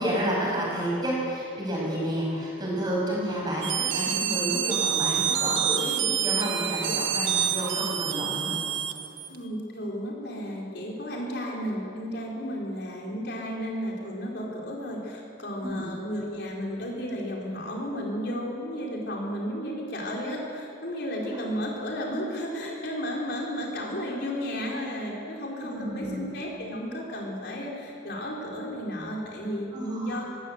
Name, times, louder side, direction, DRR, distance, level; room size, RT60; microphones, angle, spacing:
voice 1, 0.0-8.5 15.6-15.9 21.2-21.4 25.6-26.3 29.7-30.4, right 1 dB, 20° right, -4 dB, 6.5 m, -30 dB
sound 1, 3.6-9.4, right 9 dB, 75° right, 1.2 m, -27 dB
voice 2, 9.3-30.4, equal, 55° left, -2 dB, 4.5 m, -33 dB
20.0 x 17.0 x 8.2 m, 2.7 s
head